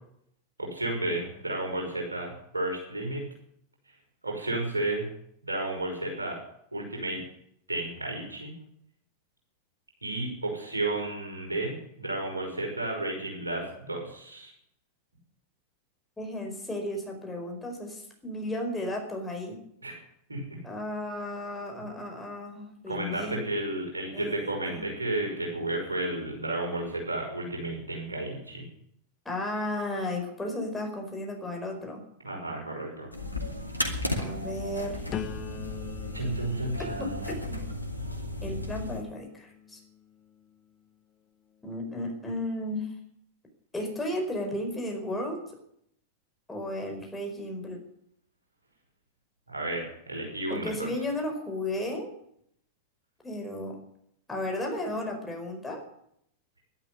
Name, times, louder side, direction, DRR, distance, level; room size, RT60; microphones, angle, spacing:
voice 1, 0.6-3.2 4.2-5.1 5.4-6.4 6.7-7.2 7.7-8.5 10.0-14.5 19.8-19.9 20.3-20.6 22.9-28.7 32.2-33.1 36.1-37.5 49.5-50.9, right 2 dB, 80° right, 1 dB, 5.6 m, -32 dB
voice 2, 16.2-19.6 20.6-23.4 24.1-24.8 29.2-32.0 34.2-35.0 37.0-37.7 38.4-39.8 41.6-42.9 43.7-45.4 46.5-47.8 50.5-52.1 53.2-53.8 54.3-55.9, left 1 dB, 10° left, 2 dB, 4.9 m, -34 dB
sound 1, 33.1-39.0, left 1 dB, 85° left, 2.4 m, -34 dB
sound 2, 35.1-41.0 41.5-41.9, left 9 dB, 30° left, 1.2 m, -44 dB
12.0 x 11.5 x 9.9 m, 0.71 s
figure-of-eight pair, 90°, 0 cm